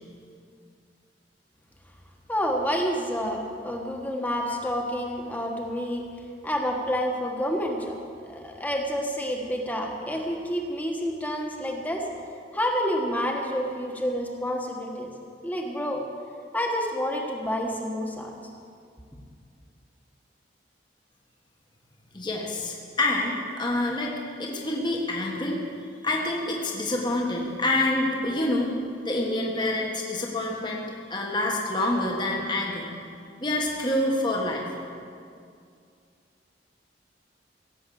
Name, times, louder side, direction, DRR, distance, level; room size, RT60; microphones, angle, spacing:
voice 1, 2.3-6.0 6.4-7.9 8.2-12.0 12.5-15.1 15.4-16.0 16.5-18.3, equal, 10° left, 1 dB, 1.5 m, -28 dB
voice 2, 22.1-24.1 24.4-25.6 26.0-28.7 29.0-30.8 31.1-32.9 33.4-34.6, left 2 dB, 25° left, -1 dB, 1.5 m, -27 dB
17.0 x 7.8 x 7.7 m, 2.3 s
head